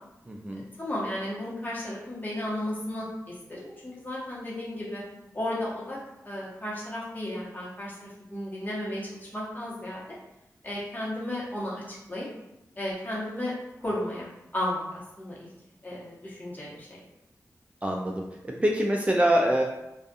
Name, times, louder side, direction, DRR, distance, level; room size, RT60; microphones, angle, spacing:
voice 1, 0.3-0.6 17.8-19.6, right 1 dB, 20° right, 0 dB, 0.3 m, -25 dB
voice 2, 0.8-3.0 3.5-5.0 5.3-6.0 6.2-10.0 10.6-11.8 12.1-12.3 12.8-13.5 13.8-14.3 14.5-14.8 15.2-15.5 15.8-17.0, left 1 dB, 30° left, -7 dB, 1.1 m, -33 dB
2.5 x 2.4 x 2.4 m, 0.90 s
cardioid pair, 50°, 6 cm